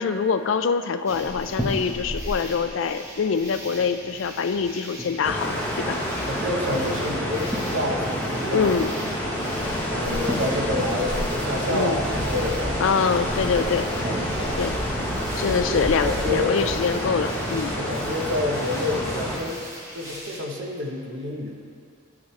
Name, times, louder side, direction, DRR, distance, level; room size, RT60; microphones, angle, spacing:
voice 1, 0.0-6.0 8.5-8.9 11.7-12.0 12.8-14.1 14.6-14.8 15.4-17.8, left 5 dB, 65° left, 10 dB, 0.4 m, -24 dB
sound 1, 1.0-20.4, equal, 15° right, 1.1 m, -36 dB
sound 2, 5.2-19.4, equal, 10° left, 1.0 m, -28 dB
voice 2, 6.3-8.7 9.9-12.7 13.5-13.8 14.0-14.6 15.4-16.6 17.8-19.6 19.9-21.5, left 1 dB, 65° right, 0 dB, 1.0 m, -28 dB
12.5 x 6.0 x 3.2 m, 2.3 s
head